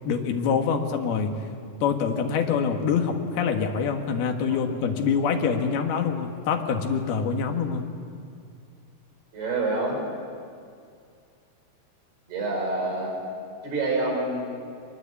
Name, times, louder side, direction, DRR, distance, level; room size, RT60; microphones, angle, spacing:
voice 1, 0.1-1.3 1.8-7.9, left 6 dB, 80° left, 3 dB, 3.5 m, -25 dB
voice 2, 9.3-10.0 12.3-13.2 13.6-14.7, right 2 dB, 90° right, 0 dB, 7.5 m, -27 dB
24.5 x 20.0 x 8.5 m, 2.3 s
omnidirectional pair, 4.5 m